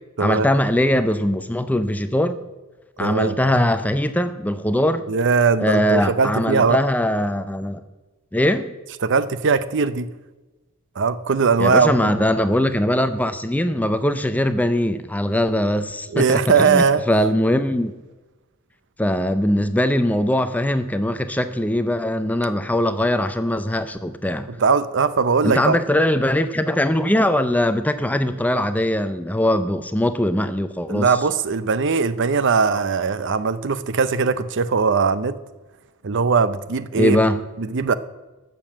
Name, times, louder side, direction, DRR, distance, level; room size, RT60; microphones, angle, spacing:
voice 1, 0.2-2.4 3.0-5.0 5.6-7.8 8.3-8.7 11.6-17.9 19.0-24.5 25.4-31.1 36.9-37.4, left 1 dB, 5° left, 11 dB, 0.5 m, -21 dB
voice 2, 3.0-3.4 5.1-6.8 9.0-10.1 11.0-12.3 16.1-17.0 24.5-25.8 30.9-35.4 36.0-37.2 37.6-37.9, right 5 dB, 55° right, 14 dB, 0.6 m, -20 dB
13.0 x 7.0 x 7.4 m, 1.2 s
head